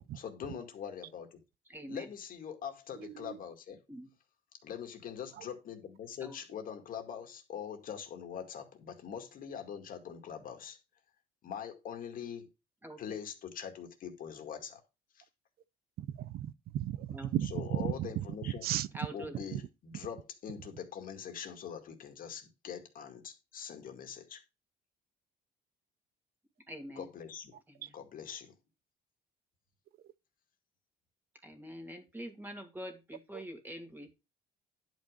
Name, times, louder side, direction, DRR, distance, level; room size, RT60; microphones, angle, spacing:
voice 1, 0.2-1.4 1.9-3.8 4.6-10.8 11.4-12.5 13.0-14.8 15.2-15.3 17.4-18.7 19.1-24.4 27.0-27.6 27.9-28.5, left 8 dB, 55° left, 2.1 m, -43 dB
voice 2, 1.7-2.1 3.9-4.1 6.2-6.4 12.8-13.2 17.1-17.3 18.9-19.4 26.7-27.1 27.7-28.0 31.4-34.1, equal, 10° right, 2.4 m, -45 dB
voice 3, 3.0-3.4 16.2-18.1 18.6-18.9 19.5-19.6 27.8-27.9 33.3-33.4, right 12 dB, 65° right, 0.5 m, -35 dB
10.5 x 5.2 x 5.1 m
cardioid pair, 110°, 17 cm